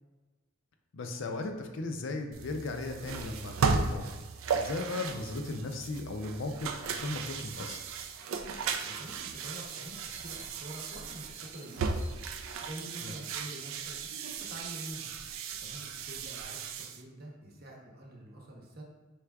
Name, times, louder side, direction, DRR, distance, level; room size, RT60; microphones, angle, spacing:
voice 1, 0.9-4.2 4.5-7.8 13.0-13.1, left 2 dB, 65° left, 5 dB, 0.4 m, -36 dB
sound 1, 2.3-17.0, right 5 dB, 80° right, 0.3 m, -36 dB
sound 2, 7.5-14.1, right 1 dB, 10° right, 0.9 m, -59 dB
voice 2, 8.6-12.2 12.6-15.1 15.6-18.8, right 1 dB, 50° right, -1 dB, 0.8 m, -47 dB
4.6 x 3.5 x 2.3 m, 1.2 s
head